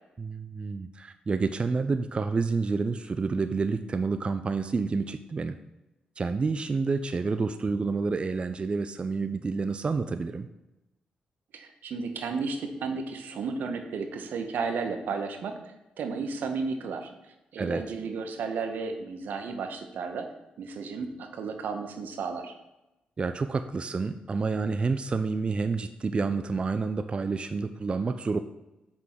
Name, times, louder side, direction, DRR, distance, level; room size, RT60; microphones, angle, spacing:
voice 1, 0.2-5.6 6.2-10.5 17.6-17.8 23.2-28.4, right 4 dB, 35° right, 9 dB, 0.3 m, -29 dB
voice 2, 11.5-17.1 17.5-20.3 20.6-22.5, right 4 dB, 80° right, 6 dB, 0.8 m, -33 dB
6.0 x 3.7 x 5.9 m, 0.98 s
cardioid pair, 80°, 3 cm